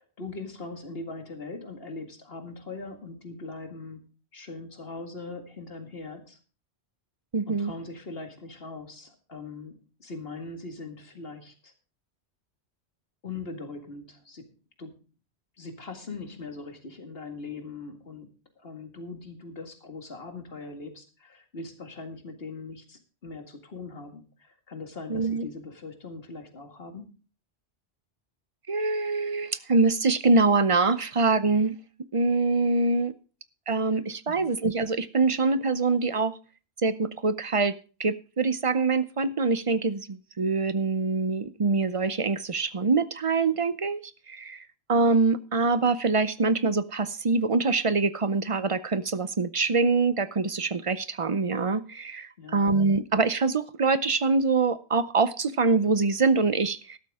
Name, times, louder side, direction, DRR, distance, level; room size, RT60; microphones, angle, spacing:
voice 1, 0.0-4.0 4.3-6.4 7.5-11.7 13.2-14.5 14.8-14.9 15.6-18.3 18.6-27.2 33.8-34.0 34.3-34.5 52.4-52.7, left 3 dB, 60° left, 6 dB, 2.2 m, -41 dB
voice 2, 7.3-7.7 25.1-25.5 28.7-31.8 32.1-33.1 33.7-36.4 36.8-37.7 38.0-44.0 44.3-44.6 44.9-57.0, right 3 dB, 35° right, 15 dB, 0.6 m, -24 dB
13.5 x 12.0 x 3.6 m, 0.36 s
omnidirectional pair, 1.1 m